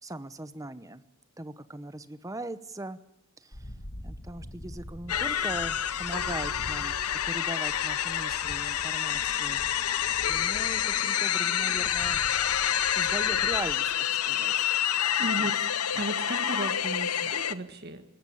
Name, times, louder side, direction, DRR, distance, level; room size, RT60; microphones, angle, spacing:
voice 1, 0.0-1.0 1.4-3.0 3.4-3.7 4.0-9.9 10.3-12.2 12.9-14.7 15.4-15.5 17.2-17.3, right 1 dB, 15° right, 13 dB, 0.9 m, -40 dB
sound 1, 3.5-13.7, equal, 50° left, 2.1 m, -45 dB
sound 2, 5.1-17.5, left 10 dB, 90° left, 0.8 m, -28 dB
voice 2, 15.2-15.6 16.0-18.0, right 1 dB, 45° right, 7 dB, 1.8 m, -35 dB
20.0 x 18.5 x 8.6 m, 0.81 s
head